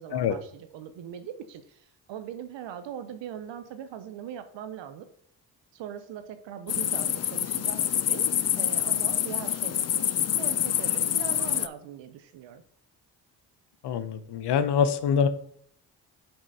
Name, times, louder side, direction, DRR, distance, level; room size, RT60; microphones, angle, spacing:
voice 1, 0.0-5.1 5.7-12.6, right 9 dB, 70° right, 10 dB, 0.9 m, -41 dB
sound 1, 6.7-11.7, left 10 dB, 35° left, 0.5 m, -26 dB
voice 2, 13.8-15.3, left 7 dB, 60° left, 13 dB, 0.9 m, -24 dB
7.6 x 4.8 x 4.0 m, 0.65 s
hypercardioid pair, 40°, 45 cm